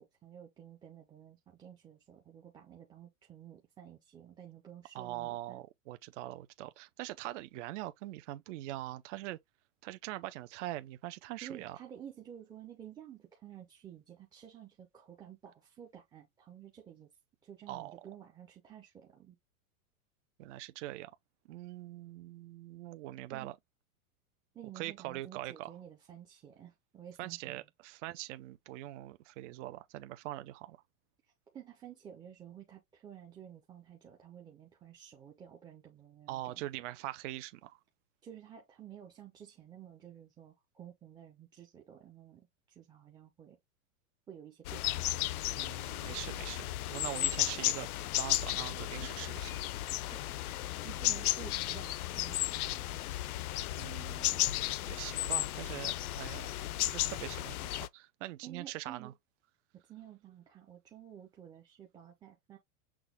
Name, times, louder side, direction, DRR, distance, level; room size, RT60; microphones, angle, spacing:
voice 1, 0.0-5.6 11.4-17.1 17.4-19.4 23.3-23.5 24.5-27.6 31.5-36.7 38.2-43.6 44.3-45.1 49.0-49.1 50.1-50.2 50.8-53.0 58.4-59.1 59.7-62.6, right 10 dB, 10° right, 0.4 m, -52 dB
voice 2, 4.9-9.4 9.8-11.8 17.7-18.0 20.4-21.1 21.5-23.6 24.8-25.7 27.2-30.8 36.3-37.8 45.5-49.5 53.7-56.5 56.8-59.1, right 16 dB, 55° right, 0.6 m, -43 dB
sound 1, 44.6-57.9, left 15 dB, 75° left, 0.6 m, -34 dB
6.1 x 2.2 x 3.4 m
supercardioid pair, 145°, 44 cm